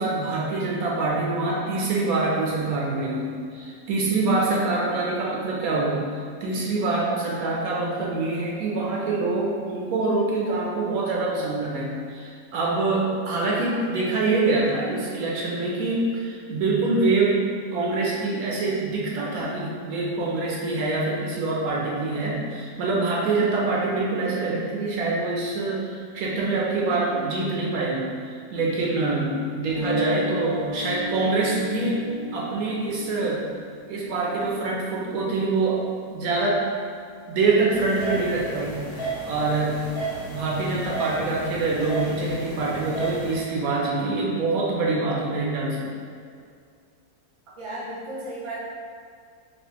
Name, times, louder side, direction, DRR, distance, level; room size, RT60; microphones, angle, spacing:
voice 1, 0.0-32.0 32.3-33.4 33.9-36.7 37.3-39.8 40.3-45.9, right 3 dB, 75° right, -3 dB, 1.0 m, -25 dB
Guitar, 29.7-35.7, equal, 20° left, 1.0 m, -34 dB
sound 1, 37.7-43.3, right 3 dB, 50° left, 1.2 m, -33 dB
voice 2, 47.6-48.6, right 1 dB, 25° right, -8 dB, 0.8 m, -34 dB
4.2 x 2.4 x 2.8 m, 2.2 s
omnidirectional pair, 1.6 m